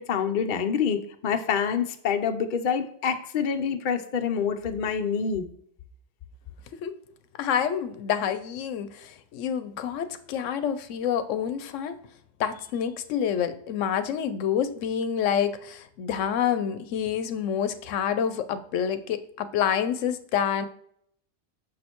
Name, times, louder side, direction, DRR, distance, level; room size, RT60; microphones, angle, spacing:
voice 1, 0.0-5.5, left 7 dB, 50° left, 7 dB, 0.7 m, -26 dB
voice 2, 7.4-12.0 12.4-20.7, left 8 dB, 85° left, 12 dB, 0.9 m, -28 dB
6.3 x 6.2 x 3.0 m, 0.66 s
omnidirectional pair, 1.3 m